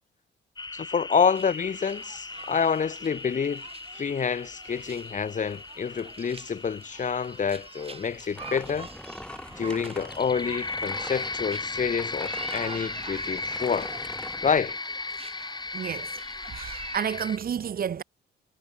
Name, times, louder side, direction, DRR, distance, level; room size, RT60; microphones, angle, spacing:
sound 1, 0.6-17.4, left 3 dB, 20° left, 1.8 m, -37 dB
voice 1, 0.7-3.7 3.9-8.9 9.6-13.9 14.4-14.8, left 6 dB, 40° left, 1.6 m, -28 dB
sound 2, 1.4-17.0, right 4 dB, 30° right, 1.9 m, -46 dB
sound 3, 8.4-14.5, left 1 dB, 5° left, 2.1 m, -42 dB
voice 2, 15.7-16.2 16.5-18.0, right 8 dB, 50° right, 1.1 m, -31 dB
cardioid pair, 90°, 20 cm